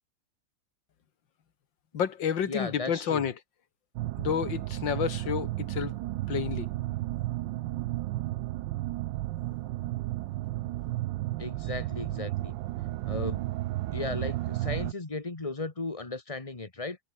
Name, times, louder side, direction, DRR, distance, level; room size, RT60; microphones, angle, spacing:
voice 1, 1.9-3.3 4.2-5.9 6.3-6.7, left 8 dB, 75° left, 2.3 m, -30 dB
voice 2, 2.5-3.3 11.4-12.6 13.0-13.5 13.9-17.0, left 3 dB, 20° left, 1.8 m, -36 dB
sound 1, 4.0-14.9, right 16 dB, 80° right, 1.3 m, -33 dB
omnidirectional pair, 2.0 m